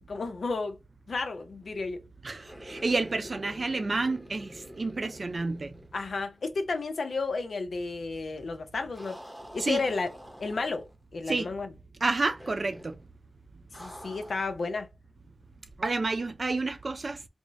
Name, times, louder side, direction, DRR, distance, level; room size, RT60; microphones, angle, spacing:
voice 1, 0.1-0.8 1.1-2.0 5.9-9.2 9.5-10.1 10.4-10.9 11.1-11.7 13.8-14.9, left 3 dB, 80° left, 0.6 m, -32 dB
voice 2, 2.2-5.8 9.6-9.8 11.3-11.5 12.0-13.0 15.8-17.2, right 3 dB, 55° right, 0.5 m, -30 dB
sound 1, 2.4-6.5 6.8-6.9 8.9-10.9 12.4-13.0 13.7-14.6, equal, 5° right, 0.8 m, -47 dB
3.5 x 2.1 x 3.9 m
wide cardioid pair, 60°, 0 cm